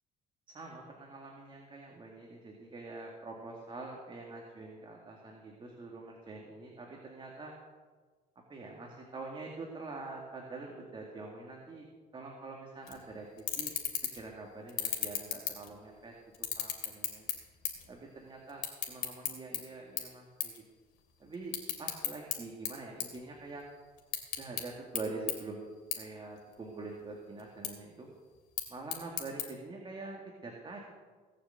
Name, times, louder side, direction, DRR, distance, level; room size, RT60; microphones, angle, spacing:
voice 1, 0.5-7.5 8.5-11.9 12.1-13.7 14.1-17.3 17.9-20.6 21.2-23.6 24.3-25.7 26.0-28.1 28.7-30.8, right 3 dB, 30° right, 0 dB, 2.2 m, -45 dB
sound 1, 12.9-13.0 13.4-14.3 14.7-16.0 16.3-17.9 18.2-19.6 20.0-20.1 20.4-20.6 20.9-22.4 22.6-23.6 24.0-24.6 24.9-25.0 25.3-25.4 25.9-26.0 26.4-26.9 27.4-27.7 28.4-29.4, left 10 dB, 75° left, 2.8 m, -34 dB
18.0 x 7.0 x 7.8 m, 1.4 s
cardioid pair, 110°, 17 cm